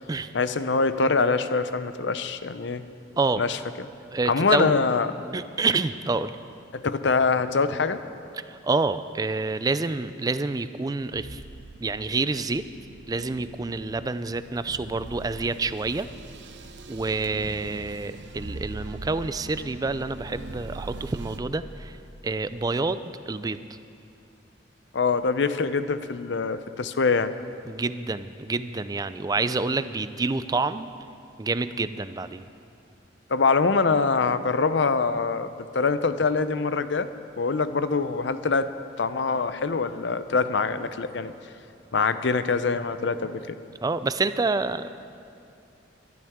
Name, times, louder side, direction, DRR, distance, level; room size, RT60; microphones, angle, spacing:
voice 1, 0.3-2.8 3.4-3.6 4.3-5.1 6.7-8.0 24.9-27.3 33.3-37.1 37.4-38.7 39.0-41.3 41.9-43.6, left 4 dB, 70° left, 12 dB, 0.6 m, -24 dB
voice 2, 4.1-4.7 5.3-6.3 8.5-11.4 11.8-12.6 13.1-16.1 16.9-22.0 22.2-23.6 27.7-30.9 31.4-32.5 43.8-44.9, right 3 dB, 20° right, 13 dB, 0.4 m, -28 dB
sound 1, 11.1-21.4, right 2 dB, 65° right, 0.8 m, -42 dB
23.0 x 12.0 x 3.6 m, 2.5 s
head